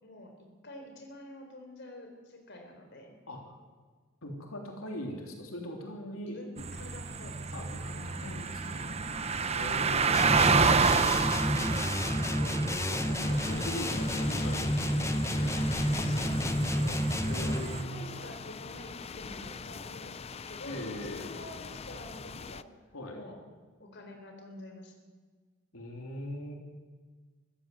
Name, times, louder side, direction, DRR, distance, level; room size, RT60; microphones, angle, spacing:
voice 1, 0.0-3.2 6.1-7.5 9.6-9.8 16.0-17.0 17.4-20.2 20.5-22.7 23.1-23.4 23.8-25.0, left 1 dB, 55° left, 4 dB, 4.0 m, -48 dB
voice 2, 4.2-6.6 7.5-8.9 9.5-10.6 11.2-15.6 17.1-18.1 20.7-21.4 22.9-23.2 25.7-26.6, equal, 85° left, 1 dB, 3.6 m, -41 dB
sound 1, 6.6-17.8, right 5 dB, 30° right, 1.0 m, -30 dB
sound 2, 10.1-17.8, equal, 15° left, 1.0 m, -30 dB
sound 3, 13.2-22.6, left 5 dB, 30° left, 0.5 m, -42 dB
24.0 x 15.0 x 7.9 m, 1.5 s
head